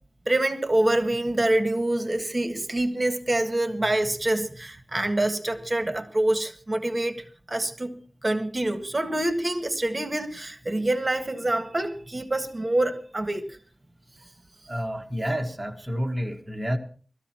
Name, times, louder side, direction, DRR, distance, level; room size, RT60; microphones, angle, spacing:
voice 1, 0.3-7.2 7.5-13.5, right 1 dB, 35° right, 1.6 m, -26 dB
voice 2, 14.7-16.8, equal, 10° right, 1.5 m, -29 dB
19.0 x 14.0 x 4.4 m
wide cardioid pair, 80°, 0 cm